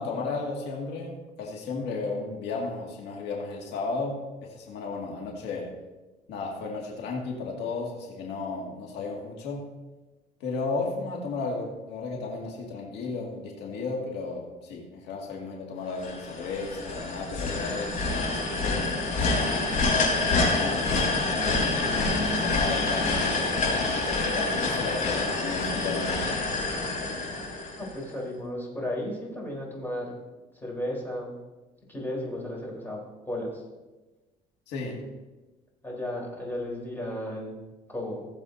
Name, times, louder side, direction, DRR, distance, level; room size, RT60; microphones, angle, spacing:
voice 1, 0.0-5.7 6.3-9.8 10.4-17.9 18.6-19.2 20.5-21.8 22.2-26.2 34.7-35.0, left 3 dB, 80° left, -1 dB, 2.2 m, -34 dB
sound 1, 16.0-28.1, left 3 dB, 50° left, 3.8 m, -27 dB
voice 2, 27.8-30.1 30.5-31.3 31.9-33.6 35.8-37.6 37.9-38.3, left 1 dB, 10° left, -3 dB, 3.9 m, -34 dB
18.5 x 7.4 x 2.7 m, 1.1 s
cardioid pair, 110°, 17 cm